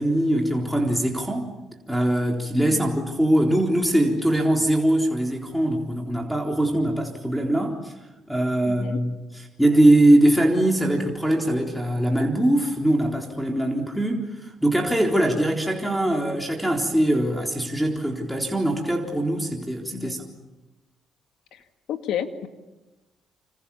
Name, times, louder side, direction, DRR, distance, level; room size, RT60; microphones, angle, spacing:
voice 1, 0.0-1.5 1.9-7.9 8.3-20.2, right 1 dB, ahead, 0 dB, 4.0 m, -22 dB
voice 2, 2.6-2.9 8.6-9.0 19.9-20.2 21.5-21.6 21.9-22.5, left 9 dB, 80° left, 8 dB, 2.1 m, -31 dB
28.5 x 27.0 x 7.2 m, 1.1 s
cardioid pair, 90°, 0 cm